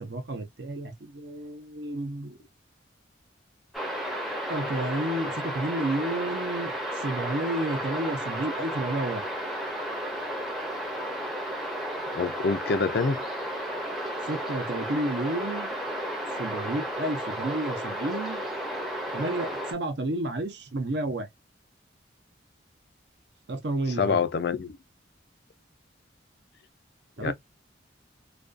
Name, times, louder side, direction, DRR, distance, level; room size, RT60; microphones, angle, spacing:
voice 1, 0.0-2.4 4.5-9.2 14.3-15.7 16.4-18.4 19.1-21.3 23.5-24.3 27.2-27.3, right 1 dB, 65° right, 0.6 m, -31 dB
sound 1, 3.7-19.7, equal, ahead, 0.5 m, -33 dB
voice 2, 12.1-13.2 24.0-24.8 27.2-27.3, left 5 dB, 55° left, 0.3 m, -26 dB
2.4 x 2.3 x 2.3 m
head